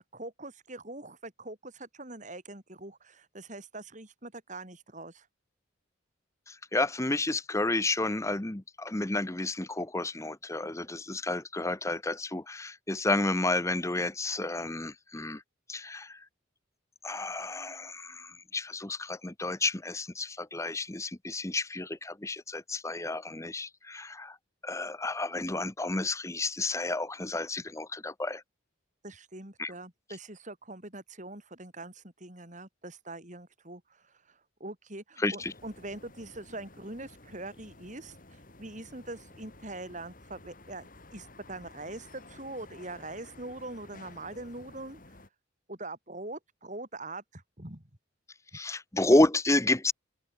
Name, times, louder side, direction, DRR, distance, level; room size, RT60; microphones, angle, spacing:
voice 1, 0.1-5.3 29.0-45.0 45.7-47.9, right 2 dB, 40° right, 4.6 m, -43 dB
voice 2, 6.5-15.4 15.7-16.2 17.0-24.4 24.6-28.4 29.6-29.7 35.2-35.5 48.5-49.9, left 2 dB, 15° left, 0.9 m, -30 dB
sound 1, 35.4-45.3, left 2 dB, 45° left, 3.2 m, -53 dB
open air
head